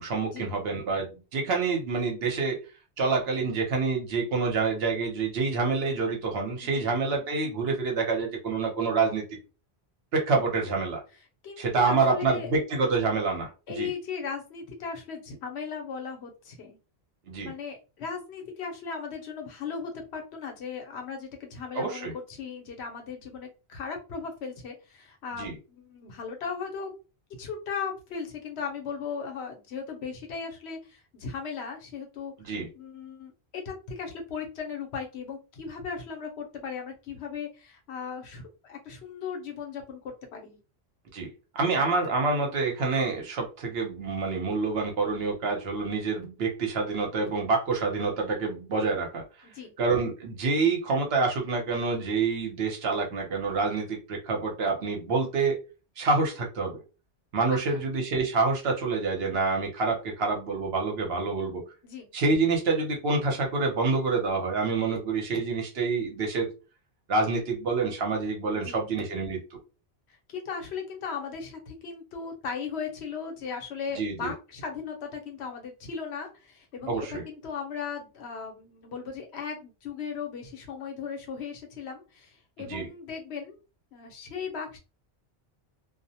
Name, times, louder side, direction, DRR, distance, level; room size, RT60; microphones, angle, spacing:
voice 1, 0.0-2.6 3.0-9.3 10.1-11.0 11.6-13.9 17.3-17.5 21.7-22.1 25.3-25.5 32.4-32.7 41.1-49.2 49.8-55.6 56.0-56.8 57.3-61.6 62.1-66.5 67.1-69.6 73.9-74.3 76.9-77.2 82.6-82.9, right 4 dB, 70° right, 0.9 m, -27 dB
voice 2, 11.4-12.5 13.7-16.8 17.4-26.9 27.4-40.6 49.4-49.7 57.7-57.8 61.8-62.1 68.5-68.8 70.3-83.6 83.9-84.8, left 6 dB, 80° left, 1.0 m, -37 dB
2.3 x 2.0 x 2.7 m
omnidirectional pair, 1.1 m